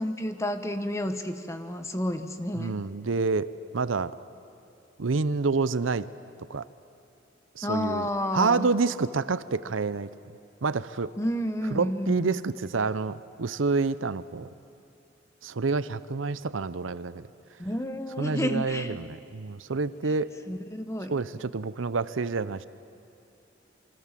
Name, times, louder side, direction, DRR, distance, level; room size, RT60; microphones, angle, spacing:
voice 1, 0.0-2.8 7.6-8.7 11.2-12.3 17.6-19.0 20.0-20.1 20.5-21.1, equal, 15° left, 8 dB, 1.2 m, -30 dB
voice 2, 2.5-3.5 3.7-4.1 5.0-6.1 6.5-6.6 7.6-8.1 8.3-10.1 10.6-11.1 11.7-14.5 15.4-17.3 18.2-20.3 21.1-22.7, right 4 dB, 85° right, 15 dB, 0.7 m, -28 dB
27.0 x 24.5 x 7.5 m, 2.7 s
head